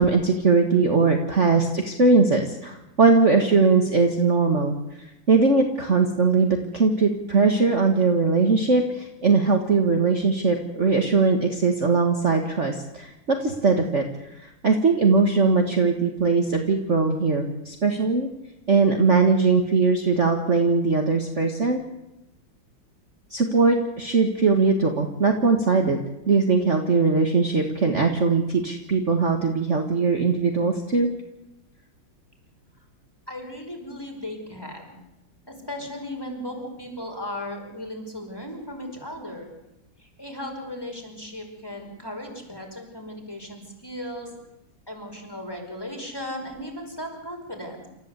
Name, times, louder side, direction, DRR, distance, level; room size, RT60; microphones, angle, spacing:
voice 1, 0.0-4.7 5.3-14.0 14.3-18.3 18.7-21.8 23.3-26.0 26.3-31.1, right 4 dB, 35° right, 3 dB, 1.9 m, -20 dB
voice 2, 33.3-35.0 35.5-39.5 40.0-44.3 44.9-47.9, left 1 dB, 10° left, 1 dB, 5.2 m, -36 dB
28.5 x 14.5 x 8.3 m, 0.90 s
omnidirectional pair, 2.2 m